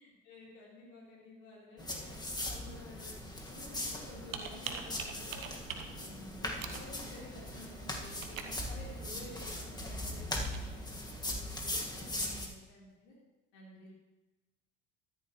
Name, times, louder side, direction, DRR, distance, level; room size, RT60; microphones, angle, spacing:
voice 1, 0.0-3.1 3.5-5.5 5.9-13.1 13.5-13.9, left 2 dB, 70° left, -5 dB, 3.9 m, -52 dB
sound 1, 1.8-12.5, left 1 dB, 10° left, 1.8 m, -40 dB
Computer keyboard, 3.7-10.6, right 6 dB, 85° right, 1.2 m, -46 dB
13.5 x 10.5 x 3.2 m, 1.1 s
hypercardioid pair, 70°, 39 cm